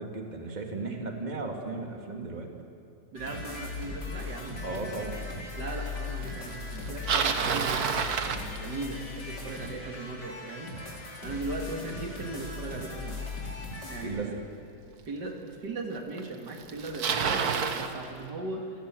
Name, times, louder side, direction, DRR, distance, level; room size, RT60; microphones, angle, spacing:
voice 1, 0.0-2.5 4.6-5.2 14.0-14.4, right 3 dB, 25° right, 3 dB, 2.2 m, -35 dB
voice 2, 3.1-5.0 5.6-10.7 11.2-13.3 13.9-14.4 15.1-18.6, right 2 dB, 85° right, 3 dB, 2.8 m, -38 dB
sound 1, 3.2-14.0, left 3 dB, 80° left, 4.2 m, -38 dB
Bicycle, 6.7-9.1 14.1-14.2 15.0-15.1 16.2-16.3 16.5-17.9, right 6 dB, 65° right, 1.7 m, -29 dB
28.5 x 15.5 x 7.6 m, 2.8 s
omnidirectional pair, 1.8 m